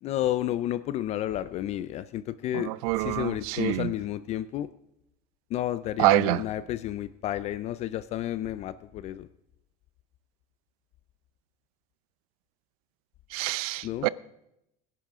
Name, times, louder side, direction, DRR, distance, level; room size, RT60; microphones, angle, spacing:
voice 1, 0.0-2.7 3.0-4.7 5.5-9.3 13.8-14.1, left 13 dB, 35° left, 0.4 m, -31 dB
voice 2, 2.5-3.9 6.0-6.4 13.3-14.1, right 18 dB, 90° right, 0.6 m, -26 dB
22.0 x 10.5 x 3.6 m
cardioid pair, 160°, 18 cm